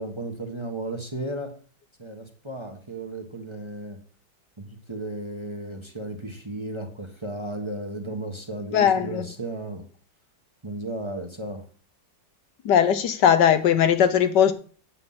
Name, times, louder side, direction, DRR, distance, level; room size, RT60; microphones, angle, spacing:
voice 1, 0.0-1.5 2.0-4.0 4.6-9.8 10.6-11.6, right 1 dB, 15° right, 1.3 m, -34 dB
voice 2, 8.7-9.3 12.6-14.5, left 9 dB, 70° left, 1.4 m, -19 dB
8.8 x 7.8 x 5.7 m
omnidirectional pair, 2.0 m